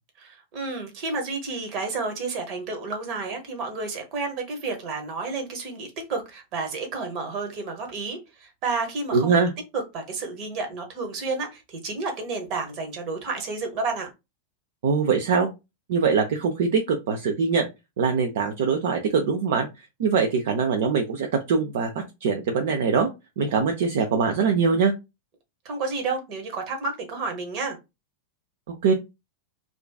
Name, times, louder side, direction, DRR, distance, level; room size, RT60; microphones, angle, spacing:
voice 1, 0.2-9.3 9.7-14.1 25.6-27.8, right 3 dB, 40° right, 0.8 m, -31 dB
voice 2, 9.1-9.5 14.8-15.5 15.9-17.7 18.0-19.7 20.0-21.9 22.2-23.1 23.4-24.9 28.7-28.9, right 5 dB, 55° right, 0.4 m, -22 dB
2.4 x 2.2 x 2.3 m
figure-of-eight pair, 90°, 0 cm